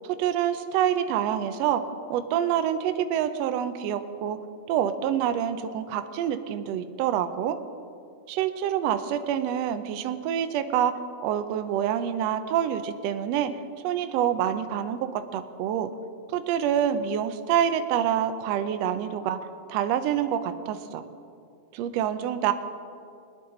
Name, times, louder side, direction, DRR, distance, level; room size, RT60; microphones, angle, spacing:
voice 1, 0.1-1.8 2.1-4.4 4.7-7.6 8.3-10.9 11.2-13.5 13.8-15.9 16.3-21.0 21.7-22.5, right 10 dB, 75° right, 9 dB, 1.6 m, -26 dB
20.5 x 10.5 x 3.8 m, 2.4 s
omnidirectional pair, 3.3 m